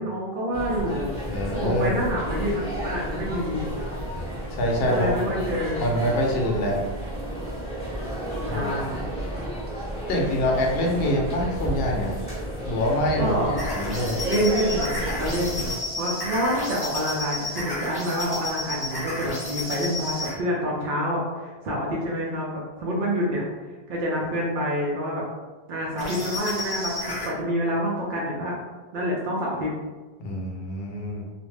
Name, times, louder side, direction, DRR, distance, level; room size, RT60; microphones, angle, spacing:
voice 1, 0.0-1.1 1.6-3.7 4.9-5.8 8.4-9.0 11.1-11.2 13.2-13.6 14.3-15.7 16.0-23.4 23.9-25.2 25.7-28.6 28.9-29.7, equal, 60° right, -4 dB, 0.6 m, -27 dB
sound 1, 0.5-15.7, right 1 dB, 5° left, 1.0 m, -32 dB
voice 2, 1.3-2.0 4.6-5.2 5.8-6.8 8.5-8.7 10.1-12.1 12.6-14.2 30.2-31.2, left 1 dB, 70° left, 0 dB, 0.8 m, -25 dB
sound 2, 13.6-20.4 26.0-27.3, left 1 dB, 30° left, 0.5 m, -32 dB
2.4 x 2.1 x 3.2 m, 1.3 s
omnidirectional pair, 1.1 m